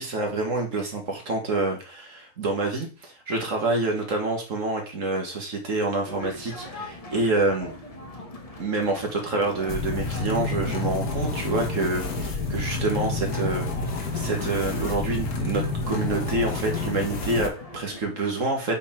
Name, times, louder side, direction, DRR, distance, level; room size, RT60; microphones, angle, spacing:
voice 1, 0.0-7.8 8.6-18.7, right 2 dB, 55° right, 2 dB, 1.9 m, -27 dB
sound 1, 6.1-18.0, left 1 dB, 25° left, 1.0 m, -41 dB
sound 2, 9.7-17.5, left 3 dB, 70° left, 1.7 m, -29 dB
8.2 x 3.8 x 4.4 m, 0.35 s
omnidirectional pair, 1.7 m